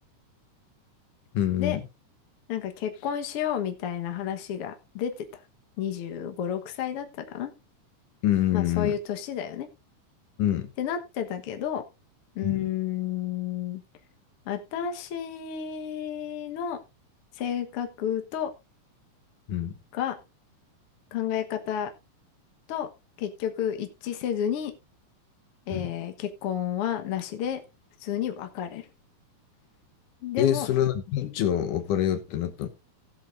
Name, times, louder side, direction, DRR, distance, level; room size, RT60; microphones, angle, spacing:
voice 1, 1.3-1.8 8.2-8.9 10.4-10.7 12.4-12.6 19.5-19.8 25.7-25.9 30.4-32.7, left 11 dB, 75° left, 2.5 m, -26 dB
voice 2, 2.5-5.2 5.8-7.5 8.5-9.7 10.8-11.8 12.3-13.8 14.5-16.8 17.4-18.5 19.9-20.2 21.1-21.9 22.7-22.9 23.2-24.7 25.7-27.6 28.0-28.9 30.2-30.7, left 9 dB, 55° left, 1.8 m, -31 dB
17.5 x 7.9 x 2.5 m
omnidirectional pair, 3.7 m